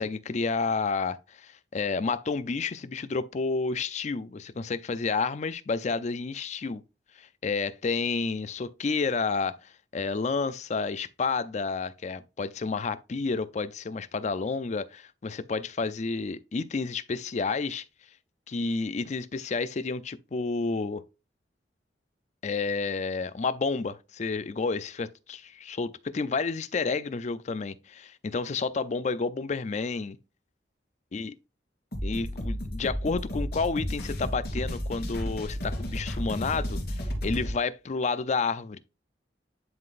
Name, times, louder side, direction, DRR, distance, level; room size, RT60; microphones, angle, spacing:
voice 1, 0.0-6.8 7.2-17.8 18.5-21.0 22.4-30.2 31.1-31.3 32.0-38.8, left 4 dB, 40° left, 0.4 m, -30 dB
sound 1, 31.9-37.5, equal, 60° left, 2.8 m, -32 dB
11.0 x 3.9 x 2.5 m
head